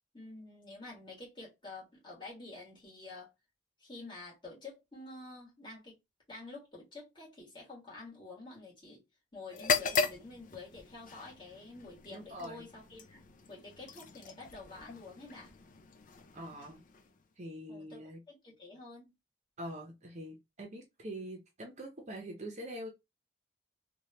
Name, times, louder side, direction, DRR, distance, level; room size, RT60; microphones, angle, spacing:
voice 1, 0.1-3.3 3.8-6.0 6.3-9.0 9.3-13.2 13.5-15.5 17.7-19.1, left 3 dB, 25° left, 1.7 m, -49 dB
sound 1, 9.5-17.3, left 5 dB, 45° left, 0.4 m, -38 dB
voice 2, 12.1-12.6 16.3-16.8 17.4-18.2 19.6-22.9, equal, 40° right, 0.7 m, -44 dB
3.2 x 2.3 x 2.8 m
head